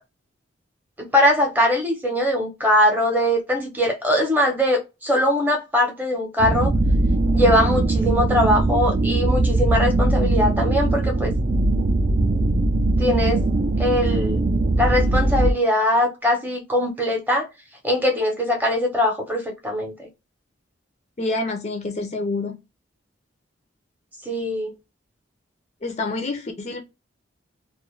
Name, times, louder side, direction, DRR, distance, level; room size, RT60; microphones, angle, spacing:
voice 1, 1.0-6.7 7.3-11.3 13.0-13.4 13.8-14.4 14.8-17.5 17.8-20.1 24.2-24.7, left 1 dB, 10° right, 0.7 m, -21 dB
sound 1, 6.4-15.5, right 2 dB, 45° right, 0.4 m, -20 dB
voice 2, 21.2-22.6 25.8-26.8, left 2 dB, 35° left, 0.4 m, -27 dB
2.3 x 2.1 x 3.0 m
head